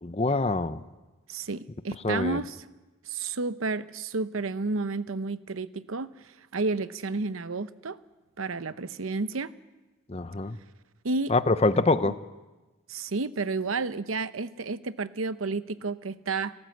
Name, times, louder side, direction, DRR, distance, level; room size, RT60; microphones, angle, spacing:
voice 1, 0.0-0.8 2.0-2.4 10.1-10.6 11.3-12.2, left 3 dB, 30° left, 13 dB, 0.7 m, -25 dB
voice 2, 1.3-2.6 3.1-8.0 8.4-9.5 11.0-11.3 11.7-12.1 12.9-16.5, right 3 dB, 85° right, 13 dB, 0.8 m, -31 dB
30.0 x 14.0 x 7.9 m, 1.2 s
head